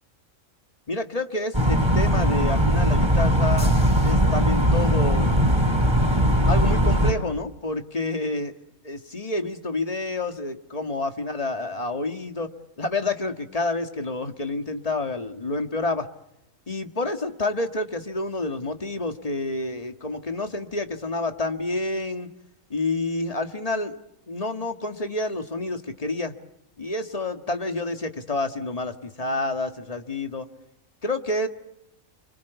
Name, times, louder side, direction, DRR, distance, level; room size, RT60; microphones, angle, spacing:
voice 1, 0.9-3.7 4.0-5.4 6.5-8.5 8.8-12.5 12.8-16.1 16.7-22.3 22.7-24.0 24.3-26.3 26.8-30.5 31.0-31.5, left 2 dB, 30° left, 6 dB, 1.8 m, -28 dB
sound 1, 1.5-7.1, equal, 20° right, 4.0 m, -20 dB
29.0 x 25.0 x 8.2 m, 0.84 s
omnidirectional pair, 1.4 m